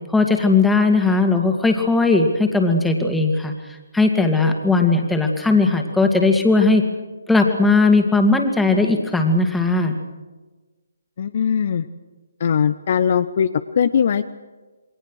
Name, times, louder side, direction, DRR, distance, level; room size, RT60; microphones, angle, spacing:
voice 1, 0.1-3.5 3.9-6.8 7.3-10.0, left 3 dB, 5° left, 3 dB, 2.3 m, -17 dB
voice 2, 11.2-11.9 12.4-13.5 13.8-14.3, left 7 dB, 45° left, 12 dB, 0.9 m, -19 dB
28.0 x 22.5 x 6.5 m, 1.3 s
figure-of-eight pair, 140°, 0 cm